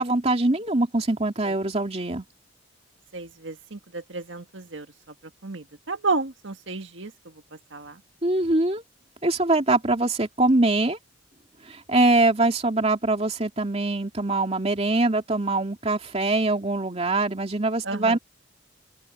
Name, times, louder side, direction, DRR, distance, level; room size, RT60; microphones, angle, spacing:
voice 1, 0.0-2.2 8.2-8.8 9.2-11.0 11.7-18.2, right 2 dB, 30° right, 2.8 m, -23 dB
voice 2, 3.1-4.9 5.4-7.3 7.7-8.0 17.8-18.2, right 3 dB, 65° right, 1.8 m, -32 dB
open air
head